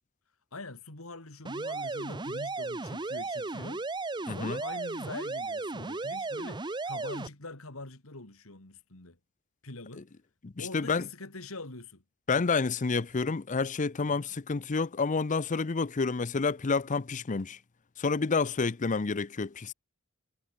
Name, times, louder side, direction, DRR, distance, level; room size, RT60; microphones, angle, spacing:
voice 1, 0.5-3.8 4.2-9.2 9.6-10.1 10.6-12.0, left 2 dB, 70° left, 3.0 m, -44 dB
sound 1, 1.5-7.3, right 3 dB, 20° right, 0.8 m, -35 dB
voice 2, 4.3-4.6 10.0-10.1 10.4-11.1 12.3-17.6 18.0-19.7, left 4 dB, 35° left, 0.6 m, -29 dB
head